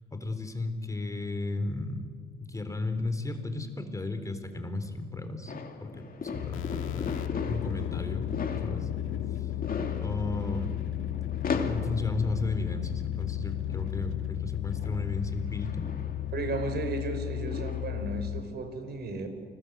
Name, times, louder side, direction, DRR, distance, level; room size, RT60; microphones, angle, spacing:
voice 1, 0.1-2.1 2.5-5.5 5.8-7.1 7.4-8.3 8.6-8.9 9.3-9.5 10.0-10.8 11.5-15.9, left 2 dB, 15° left, 8 dB, 3.8 m, -34 dB
sound 1, 5.5-18.2, left 5 dB, 45° left, 2.6 m, -39 dB
sound 2, 6.3-18.4, left 13 dB, 85° left, 1.8 m, -34 dB
voice 2, 16.3-19.3, right 3 dB, 55° right, 7 dB, 5.2 m, -34 dB
29.5 x 20.0 x 8.1 m, 2.1 s
cardioid pair, 90°, 20 cm